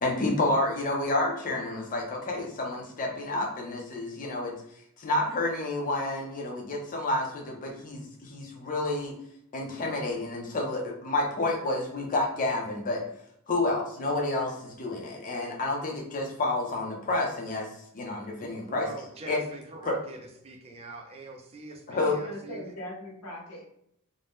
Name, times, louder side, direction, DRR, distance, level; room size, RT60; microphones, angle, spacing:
voice 1, 0.0-4.5 5.0-9.1 9.5-13.0 13.5-17.7 17.9-18.9 19.3-19.4 19.8-19.9 21.9-22.2, left 2 dB, 35° left, 0 dB, 0.5 m, -29 dB
voice 2, 18.4-22.7, right 3 dB, 25° right, 3 dB, 0.4 m, -43 dB
voice 3, 22.0-23.6, equal, 85° left, -4 dB, 1.1 m, -40 dB
2.5 x 2.1 x 3.4 m, 0.73 s
head